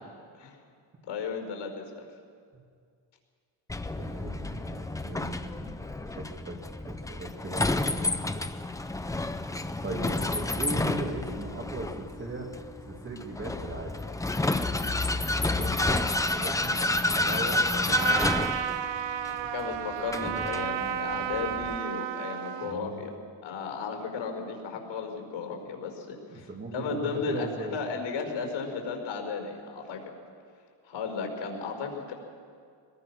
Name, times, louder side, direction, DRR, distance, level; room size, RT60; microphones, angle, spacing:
voice 1, 1.1-2.0 19.4-23.1 23.4-30.0 30.8-32.1, left 5 dB, 85° left, 2 dB, 5.2 m, -35 dB
Vehicle, 3.7-21.8, left 2 dB, 10° left, 0.4 m, -30 dB
voice 2, 4.0-5.8 6.2-6.6 6.8-8.5 9.8-12.5 12.9-14.0 15.0-18.3 22.6-23.0 26.3-27.8, right 2 dB, 25° right, 1 dB, 2.4 m, -38 dB
Trumpet, 17.9-22.8, right 10 dB, 65° right, 1.0 m, -32 dB
22.5 x 21.5 x 6.4 m, 2.2 s
cardioid pair, 175°, 47 cm